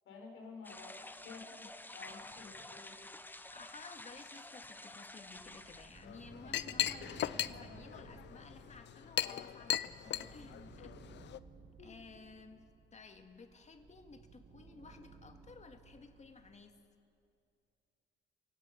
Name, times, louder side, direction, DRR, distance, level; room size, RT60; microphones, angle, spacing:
voice 1, 0.0-3.1 6.7-6.9 10.0-10.2 11.8-11.9, left 4 dB, 80° left, 0 dB, 5.9 m, -52 dB
sound 1, 0.6-6.1, left 2 dB, 10° left, 0.9 m, -50 dB
voice 2, 2.0-2.4 3.5-11.0 11.8-16.8, left 4 dB, 35° left, 6 dB, 2.0 m, -55 dB
sound 2, 5.3-16.6, right 4 dB, 45° right, 2.3 m, -57 dB
Chink clink, 6.0-11.4, left 11 dB, 65° left, 0.6 m, -38 dB
29.5 x 17.5 x 5.9 m, 2.5 s
cardioid pair, 90°, 20 cm